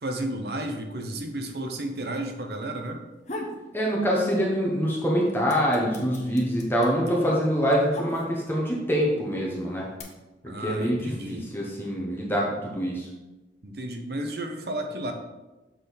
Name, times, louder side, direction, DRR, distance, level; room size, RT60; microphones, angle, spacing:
voice 1, 0.0-3.0 10.5-11.4 13.6-15.1, right 1 dB, 65° right, 4 dB, 0.8 m, -32 dB
sound 1, 3.0-3.6 4.0-4.7 5.0-8.6 9.4-10.0, left 1 dB, 40° left, 0.9 m, -39 dB
voice 2, 3.7-9.9 10.4-13.1, equal, 10° left, -3 dB, 1.1 m, -25 dB
6.3 x 5.1 x 4.1 m, 1.1 s
head